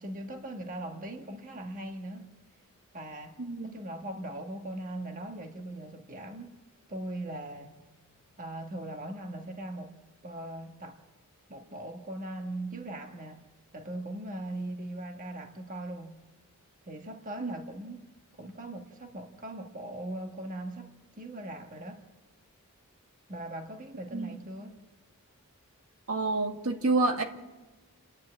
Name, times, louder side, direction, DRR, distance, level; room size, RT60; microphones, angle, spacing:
voice 1, 0.0-2.3 2.9-3.4 3.6-6.6 6.9-7.8 8.4-9.9 10.2-11.0 11.5-13.4 13.7-16.1 16.8-18.1 18.4-22.0 23.3-24.8, right 1 dB, 35° right, 1.4 m, -40 dB
voice 2, 3.4-3.8 17.4-17.6 24.1-24.4 26.1-27.2, right 3 dB, 75° right, 1.9 m, -28 dB
29.5 x 10.5 x 8.6 m
head